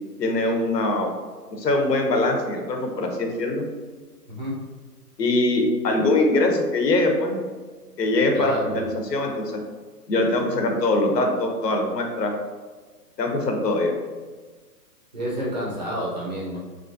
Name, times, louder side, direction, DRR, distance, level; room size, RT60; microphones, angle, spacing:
voice 1, 0.2-1.1 1.5-3.7 5.2-7.4 8.0-9.6 10.1-12.3 13.2-13.9, left 2 dB, 85° left, 3 dB, 0.8 m, -22 dB
voice 2, 4.3-4.6 8.3-8.8 15.1-16.6, equal, 30° right, -5 dB, 0.4 m, -29 dB
3.1 x 2.4 x 2.5 m, 1.4 s
hypercardioid pair, 140°, 48 cm